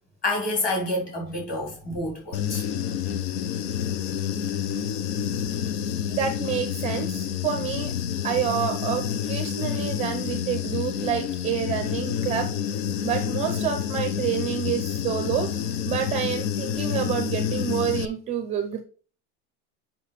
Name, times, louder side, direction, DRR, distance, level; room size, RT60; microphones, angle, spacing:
voice 1, 0.2-2.6, left 1 dB, 25° left, 3.6 m, -28 dB
Human voice / Buzz, 2.3-18.1, left 9 dB, 70° left, 0.9 m, -28 dB
voice 2, 6.1-7.9 8.2-12.5 13.0-18.8, right 9 dB, 20° right, 0.6 m, -28 dB
7.2 x 5.7 x 4.1 m
cardioid pair, 175°, 33 cm